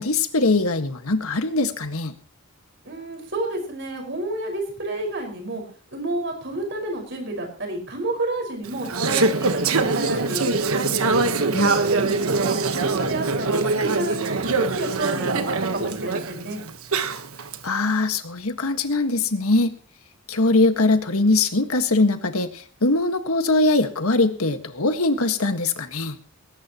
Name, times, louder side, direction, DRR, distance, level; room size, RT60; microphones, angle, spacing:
voice 1, 0.0-2.1 11.5-11.8 17.6-19.7 20.3-26.2, left 2 dB, 90° left, 8 dB, 1.8 m, -21 dB
voice 2, 2.8-5.6 5.9-9.5 9.8-10.8 11.5-16.6, right 2 dB, 55° right, 2 dB, 5.3 m, -30 dB
Conversation / Chatter, 8.6-17.6, right 3 dB, 85° right, 1.4 m, -23 dB
20.0 x 18.0 x 3.1 m, 0.41 s
head